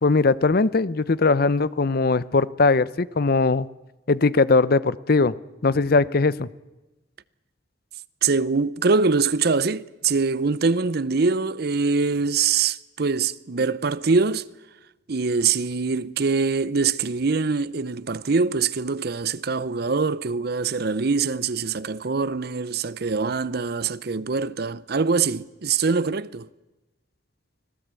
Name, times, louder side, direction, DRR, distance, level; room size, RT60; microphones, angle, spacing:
voice 1, 0.0-3.7 4.1-5.3 5.6-6.5, left 3 dB, 55° left, 0.7 m, -20 dB
voice 2, 8.2-14.4 15.1-26.5, right 4 dB, 55° right, 0.7 m, -23 dB
25.0 x 17.5 x 8.3 m
head